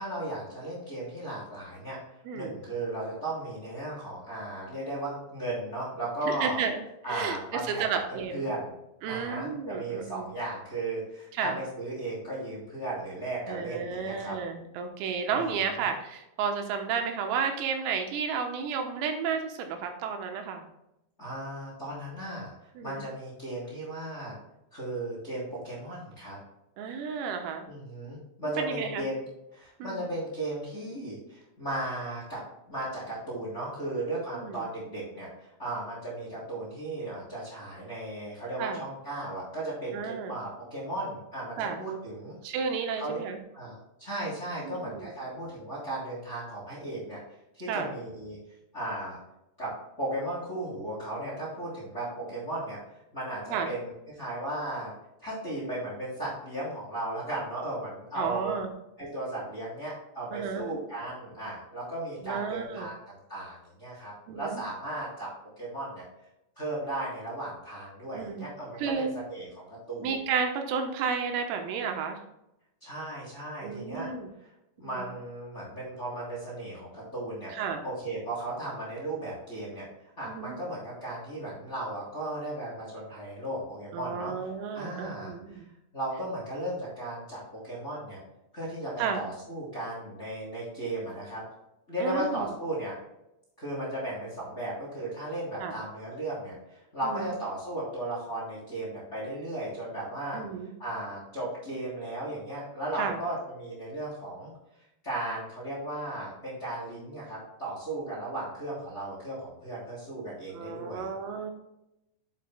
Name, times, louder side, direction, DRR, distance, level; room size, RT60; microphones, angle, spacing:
voice 1, 0.0-2.0 2.3-6.6 7.0-7.8 8.1-8.7 9.0-14.4 15.3-15.8 21.2-22.5 22.8-24.3 24.7-26.4 27.7-29.2 29.5-32.4 32.7-42.4 43.0-43.2 43.5-43.7 44.0-47.2 47.5-48.4 48.7-49.2 49.6-49.7 50.0-52.8 53.1-54.9 55.2-58.6 59.0-65.3 65.6-66.0 66.6-70.1 72.8-74.1 74.4-74.5 74.8-77.5 77.8-79.8 80.2-84.3 84.7-85.6 85.9-88.2 88.5-91.4 91.9-92.9 93.6-100.4 100.8-104.5 105.0-111.1, right 1 dB, 20° left, -6 dB, 2.5 m, -36 dB
voice 2, 2.3-2.6 6.3-6.8 7.1-8.5 9.0-10.3 11.3-11.6 13.5-20.7 22.8-23.1 26.8-27.7 28.6-29.0 29.8-30.1 34.4-34.7 38.6-38.8 39.9-40.4 41.6-41.8 42.4-43.4 44.6-45.1 47.7-47.9 53.5-53.7 58.2-58.7 60.3-60.7 62.2-62.9 64.3-64.6 68.1-68.5 68.8-69.2 70.0-72.2 73.6-74.3 74.8-75.1 77.5-77.8 80.3-80.6 83.9-85.7 89.0-89.2 92.0-92.5 95.6-95.8 97.0-97.3 100.3-100.7 103.0-103.2 110.5-111.5, right 6 dB, 85° right, 5 dB, 3.7 m, -32 dB
8.9 x 8.6 x 2.3 m, 0.87 s
omnidirectional pair, 5.9 m